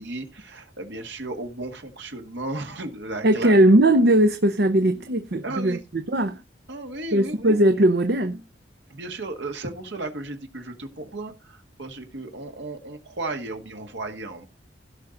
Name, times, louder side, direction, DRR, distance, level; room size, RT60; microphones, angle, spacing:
voice 1, 0.0-3.6 5.4-5.8 6.7-7.6 8.9-14.5, right 2 dB, 80° right, 1.7 m, -34 dB
voice 2, 3.2-5.8 6.1-6.4 7.1-8.4, right 1 dB, 60° right, 0.8 m, -19 dB
16.5 x 5.6 x 3.8 m
head